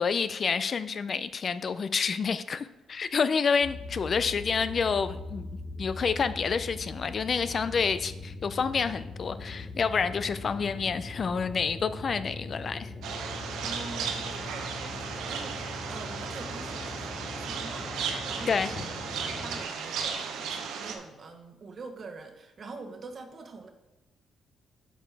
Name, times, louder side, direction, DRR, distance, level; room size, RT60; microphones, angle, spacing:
voice 1, 0.0-5.5 5.8-12.9 18.5-18.7, left 5 dB, 45° left, 13 dB, 0.3 m, -28 dB
sound 1, 3.6-19.6, left 2 dB, 30° left, 0.7 m, -41 dB
sound 2, 13.0-21.0, right 6 dB, 85° right, 0.8 m, -35 dB
voice 2, 13.6-23.7, right 3 dB, 45° right, 4 dB, 1.0 m, -45 dB
8.4 x 5.0 x 3.4 m, 1.0 s
cardioid pair, 90°, 0 cm